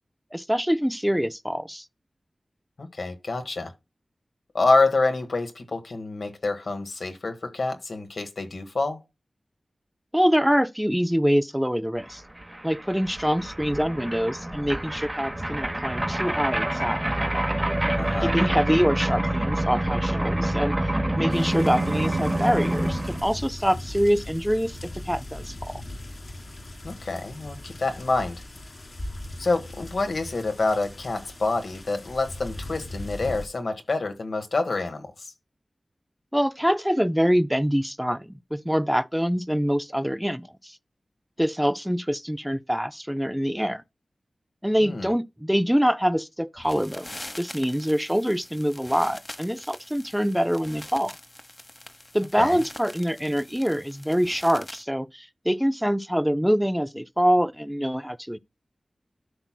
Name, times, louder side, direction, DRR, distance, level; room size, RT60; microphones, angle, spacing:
voice 1, 0.3-1.8 10.1-12.2 12.6-17.0 18.2-20.8 21.2-25.8 36.3-40.8 41.4-43.8 44.6-47.1 47.4-51.2 52.1-58.4, equal, 5° right, 0.4 m, -25 dB
voice 2, 2.8-3.7 4.5-9.0 18.0-18.3 26.8-28.4 29.4-35.3 44.8-45.1 52.4-52.6, left 3 dB, 80° left, 1.3 m, -27 dB
sound 1, 12.1-12.2 12.4-23.2, right 1 dB, 20° right, 1.0 m, -27 dB
sound 2, 21.3-33.5, left 1 dB, 55° left, 1.6 m, -39 dB
sound 3, 46.6-54.8, left 1 dB, 25° left, 1.0 m, -44 dB
12.5 x 5.8 x 2.2 m
wide cardioid pair, 65°, 0 cm